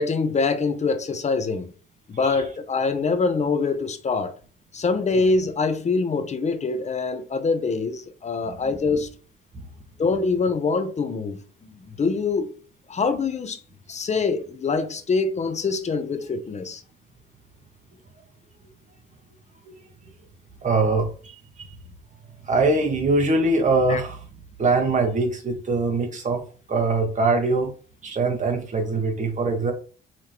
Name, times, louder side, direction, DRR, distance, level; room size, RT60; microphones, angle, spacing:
voice 1, 0.0-1.7 2.1-4.4 4.7-9.1 10.0-11.4 11.7-12.6 12.9-13.6 13.9-16.8 23.9-24.0, left 4 dB, 35° left, 0.7 m, -24 dB
voice 2, 20.6-21.3 22.4-24.2 24.6-26.4 26.7-27.7 28.0-29.7, right 3 dB, 40° right, 1.5 m, -22 dB
5.8 x 3.2 x 2.9 m
cardioid pair, 90°, 20 cm